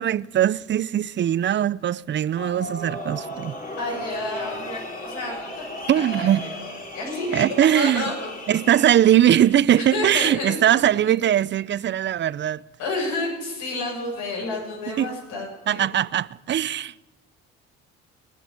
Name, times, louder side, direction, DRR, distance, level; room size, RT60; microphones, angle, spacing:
voice 1, 0.0-3.5 5.9-6.5 7.3-8.0 8.5-12.6 15.0-15.1 15.7-17.0, right 11 dB, 40° right, 0.5 m, -20 dB
sound 1, 2.4-9.6, equal, 25° left, 3.0 m, -35 dB
voice 2, 3.8-7.5 7.7-8.6 9.8-11.0 12.8-15.9, left 2 dB, 70° left, 7.4 m, -31 dB
20.0 x 7.5 x 9.1 m
supercardioid pair, 70°, 30 cm